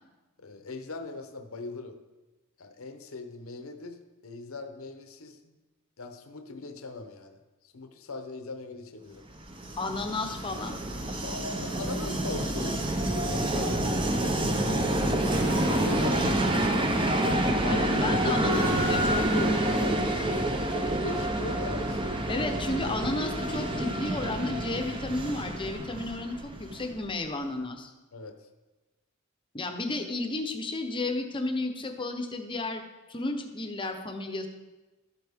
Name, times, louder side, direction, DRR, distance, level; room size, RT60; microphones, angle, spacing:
voice 1, 0.4-2.0 2.6-5.6 6.0-9.3 11.2-12.8 13.1-13.8 14.4-16.5 17.6-22.1 22.9-23.5 28.1-28.4, left 3 dB, 70° left, 7 dB, 0.8 m, -39 dB
Train, 9.4-27.1, right 1 dB, 25° right, 0.8 m, -28 dB
voice 2, 9.8-10.8 17.7-19.3 22.3-27.9 29.5-32.8 33.1-34.5, left 2 dB, 25° left, 5 dB, 0.8 m, -33 dB
sound 1, 15.3-16.7 18.5-19.9, right 1 dB, 50° right, 2.2 m, -35 dB
12.5 x 8.0 x 3.6 m, 1.1 s
head